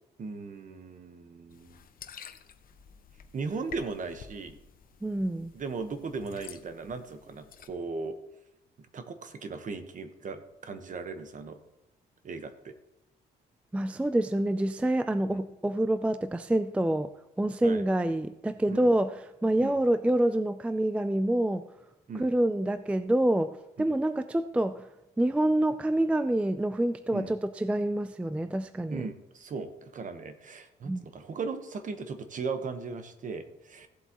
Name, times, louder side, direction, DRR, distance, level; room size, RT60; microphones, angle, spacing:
voice 1, 0.2-1.8 3.3-4.6 5.5-8.2 8.9-11.6 12.2-12.7 15.3-15.4 17.6-17.8 18.7-18.9 19.6-19.8 22.1-22.3 23.8-23.9 27.1-27.3 28.9-33.9, right 4 dB, 45° right, 8 dB, 1.1 m, -37 dB
sound 1, 1.5-7.7, left 7 dB, 50° left, 0.7 m, -50 dB
voice 2, 5.0-5.5 13.7-17.1 17.4-21.6 22.2-24.9 25.2-29.1 30.8-31.0, right 1 dB, 5° right, 11 dB, 0.3 m, -27 dB
16.5 x 7.8 x 3.0 m, 0.91 s
cardioid pair, 125°, 19 cm